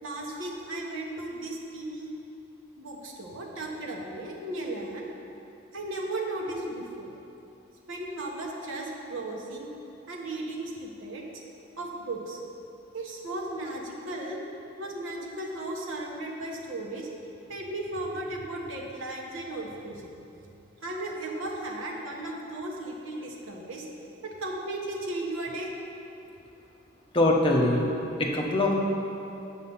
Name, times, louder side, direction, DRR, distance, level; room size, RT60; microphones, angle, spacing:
voice 1, 0.0-2.1 2.8-5.1 5.7-7.1 7.9-9.7 10.1-11.2 11.8-12.4 12.9-14.4 14.8-17.1 17.5-20.1 20.8-23.8 24.2-25.7, right 2 dB, 85° right, -1 dB, 1.2 m, -35 dB
voice 2, 27.1-27.9 28.2-28.7, left 1 dB, 25° left, -1 dB, 0.8 m, -22 dB
7.5 x 6.4 x 5.5 m, 2.9 s
head